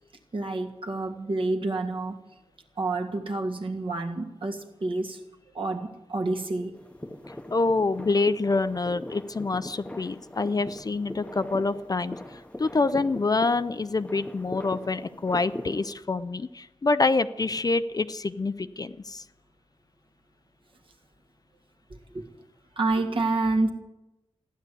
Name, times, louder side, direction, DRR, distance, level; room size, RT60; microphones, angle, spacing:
voice 1, 0.3-2.2 2.8-5.2 5.5-6.7 22.1-22.2 22.8-23.7, right 2 dB, 50° right, 2 dB, 1.8 m, -28 dB
sound 1, 6.7-15.9, left 1 dB, 10° left, 0.9 m, -41 dB
voice 2, 7.5-19.2, left 3 dB, 35° left, 12 dB, 0.5 m, -26 dB
15.0 x 11.0 x 8.4 m, 0.99 s
wide cardioid pair, 135°, 11 cm